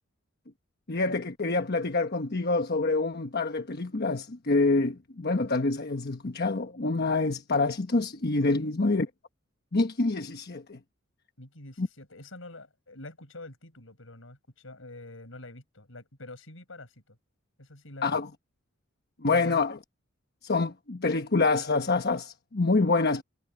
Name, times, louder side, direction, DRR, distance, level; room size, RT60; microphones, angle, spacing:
voice 1, 0.9-9.1 9.7-10.8 11.8-11.9 18.0-18.3 19.2-19.8 20.4-23.2, left 3 dB, 50° left, 1.1 m, -26 dB
voice 2, 11.4-17.2 17.6-18.2 19.3-19.7, left 2 dB, 70° left, 7.1 m, -46 dB
head